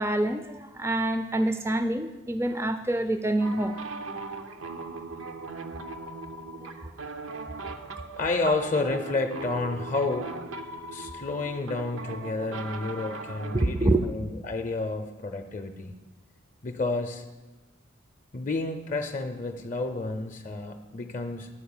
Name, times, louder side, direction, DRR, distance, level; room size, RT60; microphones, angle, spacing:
voice 1, 0.0-3.7 6.6-6.7 13.5-14.0, right 1 dB, 15° right, 8 dB, 0.3 m, -26 dB
sound 1, 3.4-13.9, right 3 dB, 85° right, 0.6 m, -39 dB
voice 2, 8.2-10.3 10.9-15.9 16.6-17.2 18.3-21.5, left 3 dB, 40° left, 5 dB, 0.5 m, -30 dB
10.0 x 4.5 x 7.1 m, 1.1 s
head